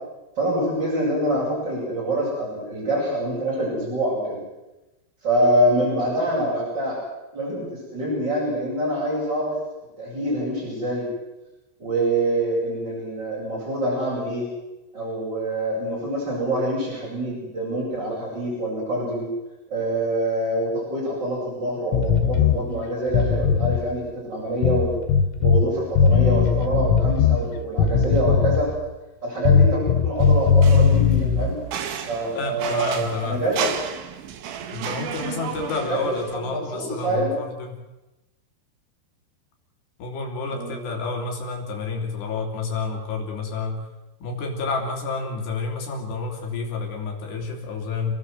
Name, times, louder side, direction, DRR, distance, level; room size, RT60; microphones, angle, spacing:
voice 1, 0.4-4.4 5.2-7.0 7.3-9.5 10.0-11.1 11.8-14.5 14.9-19.3 19.7-24.9 25.4-28.7 29.2-31.6 32.1-33.7 35.2-35.4 35.8-36.1 36.7-37.4 40.5-40.7, right 1 dB, 20° right, -5 dB, 8.6 m, -25 dB
sound 1, 21.9-22.6 23.1-23.8 24.6-25.6 26.0-27.4 27.8-28.7 29.5-31.5, left 6 dB, 90° left, 4.5 m, -18 dB
sound 2, 30.2-36.4, right 8 dB, 80° right, 4.0 m, -33 dB
voice 2, 32.4-33.4 34.7-37.8 40.0-43.9 44.2-48.1, left 4 dB, 65° left, 1 dB, 5.2 m, -29 dB
29.0 x 18.5 x 7.9 m, 1.0 s
omnidirectional pair, 5.4 m